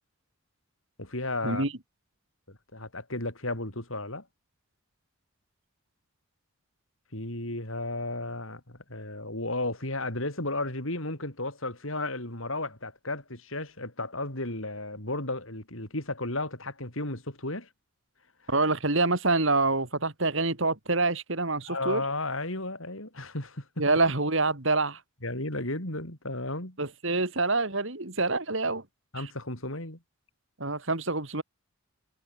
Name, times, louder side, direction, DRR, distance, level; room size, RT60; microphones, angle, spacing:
voice 1, 1.0-1.6 2.5-4.2 7.1-17.7 21.7-23.7 25.2-26.8 29.1-30.0, left 2 dB, 70° left, 6.6 m, -34 dB
voice 2, 18.5-22.0 23.8-25.0 26.8-28.8 29.2-29.3 30.6-31.4, right 3 dB, 60° right, 2.8 m, -26 dB
head